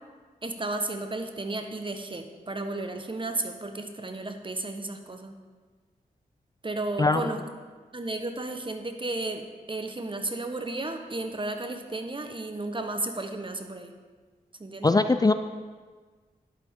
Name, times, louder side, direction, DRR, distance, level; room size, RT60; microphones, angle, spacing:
voice 1, 0.4-5.3 6.6-7.4 7.9-13.9 14.6-14.9, right 2 dB, 30° right, 6 dB, 1.2 m, -33 dB
voice 2, 14.8-15.3, left 3 dB, 25° left, 9 dB, 0.4 m, -21 dB
11.0 x 8.5 x 3.8 m, 1.5 s
cardioid pair, 40°, 16 cm